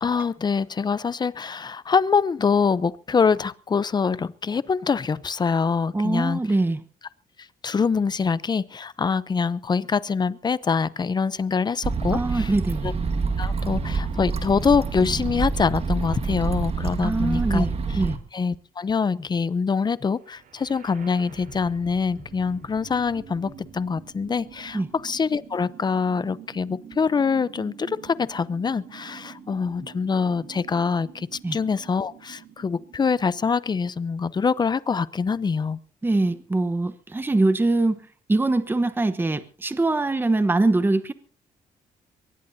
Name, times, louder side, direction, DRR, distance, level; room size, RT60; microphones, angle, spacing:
voice 1, 0.0-6.4 7.6-12.5 12.8-12.9 13.4-17.7 18.3-35.8, left 5 dB, 30° left, 0.7 m, -24 dB
voice 2, 5.9-6.8 12.1-12.9 17.0-17.7 17.9-18.2 24.7-24.9 31.4-31.6 36.0-38.0 38.3-41.1, right 2 dB, 15° right, 1.1 m, -23 dB
sound 1, 11.8-18.2, right 4 dB, 40° right, 1.8 m, -27 dB
sound 2, 20.2-34.2, right 7 dB, 70° right, 4.0 m, -46 dB
22.5 x 19.5 x 2.8 m
cardioid pair, 115°, 15 cm